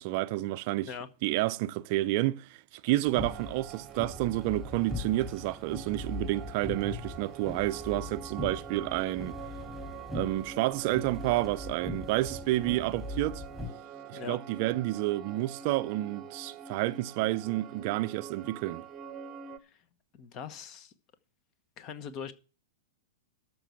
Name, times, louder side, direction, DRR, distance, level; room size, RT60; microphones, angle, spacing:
voice 1, 0.0-0.9 1.2-9.4 10.1-13.4 14.1-18.8, right 17 dB, 50° right, 0.5 m, -30 dB
sound 1, 3.1-13.7, left 2 dB, 10° left, 2.8 m, -41 dB
sound 2, 3.1-19.6, right 7 dB, 30° right, 0.9 m, -45 dB
voice 2, 20.1-20.9 21.8-22.3, left 7 dB, 40° left, 1.1 m, -41 dB
13.0 x 4.7 x 8.0 m
hypercardioid pair, 105°, 0 cm